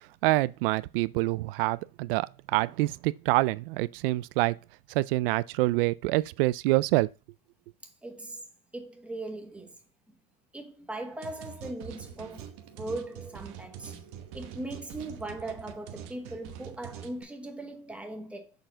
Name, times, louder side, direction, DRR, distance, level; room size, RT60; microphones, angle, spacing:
voice 1, 0.2-4.6 4.9-7.1, right 19 dB, 70° right, 0.4 m, -26 dB
voice 2, 7.8-8.4 8.7-9.8 10.5-14.0 14.3-18.7, right 2 dB, 5° right, 0.9 m, -39 dB
sound 1, 11.2-17.2, right 9 dB, 50° right, 1.0 m, -44 dB
6.7 x 4.2 x 3.8 m
supercardioid pair, 145°, 29 cm